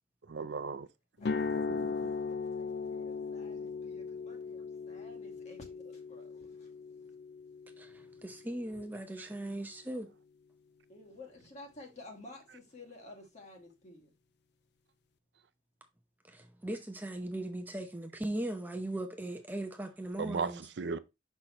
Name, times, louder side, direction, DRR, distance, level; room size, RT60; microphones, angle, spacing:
voice 1, 0.2-0.9 1.5-2.1 9.2-9.3 20.2-21.0, right 4 dB, 70° right, 0.5 m, -37 dB
sound 1, 1.2-9.2, left 5 dB, 65° left, 0.5 m, -38 dB
voice 2, 1.2-1.8 2.3-7.1 7.9-8.2 8.7-8.8 10.9-14.1, left 2 dB, 40° left, 2.1 m, -53 dB
voice 3, 7.8-10.1 16.3-20.6, right 1 dB, 10° right, 0.7 m, -39 dB
6.3 x 5.5 x 2.9 m
head